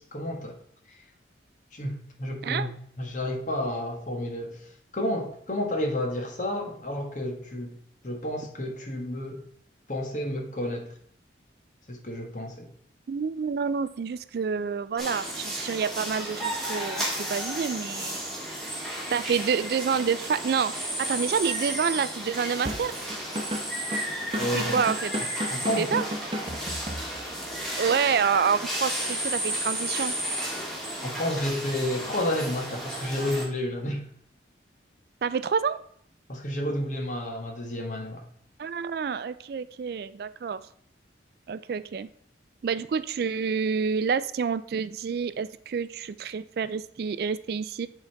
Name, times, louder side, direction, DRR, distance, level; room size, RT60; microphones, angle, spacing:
voice 1, 0.1-0.6 0.9-1.0 1.7-4.7 4.9-7.8 8.0-9.4 9.9-10.9 11.9-12.7 24.3-24.7 25.5-25.9 31.0-34.1 36.3-38.3, left 1 dB, 40° left, 2 dB, 1.4 m, -31 dB
voice 2, 13.1-18.3 19.1-23.0 24.4-25.1 25.8-26.0 27.7-30.1 35.2-35.8 38.6-40.6 41.5-42.1 42.6-47.9, right 6 dB, 55° right, 14 dB, 0.3 m, -28 dB
sound 1, 15.0-33.5, right 1 dB, ahead, 1.7 m, -33 dB
Drum kit / Drum, 22.6-27.5, equal, 30° right, 0.9 m, -34 dB
7.9 x 4.0 x 4.5 m, 0.64 s
head